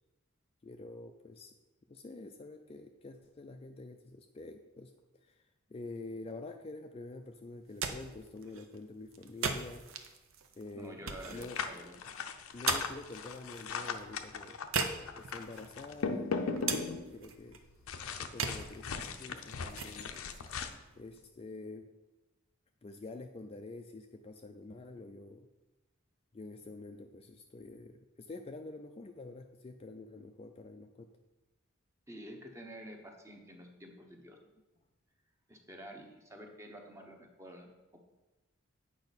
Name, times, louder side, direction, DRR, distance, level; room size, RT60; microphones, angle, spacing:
voice 1, 0.6-1.5 1.9-4.9 5.2-5.4 5.7-9.8 10.6-11.6 12.5-14.6 15.2-17.6 18.2-20.2 21.0-21.9 22.8-25.5 26.3-31.1, left 2 dB, 30° left, 5 dB, 0.4 m, -47 dB
sound 1, 7.5-21.5, right 5 dB, 70° right, 0.7 m, -41 dB
voice 2, 10.7-12.0 32.1-34.4 35.5-37.7, equal, 15° right, 2 dB, 0.9 m, -49 dB
sound 2, 11.4-17.2 17.9-20.7, left 5 dB, 85° left, 0.6 m, -38 dB
8.8 x 5.2 x 4.1 m, 1.1 s
head